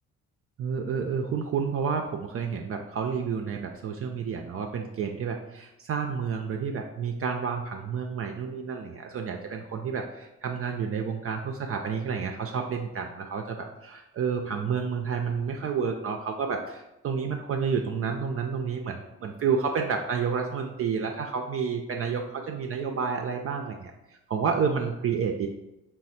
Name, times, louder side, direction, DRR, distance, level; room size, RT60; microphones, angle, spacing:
voice 1, 0.6-25.5, right 6 dB, 40° right, 3 dB, 0.4 m, -30 dB
3.2 x 2.1 x 4.0 m, 0.94 s
hypercardioid pair, 55°, 36 cm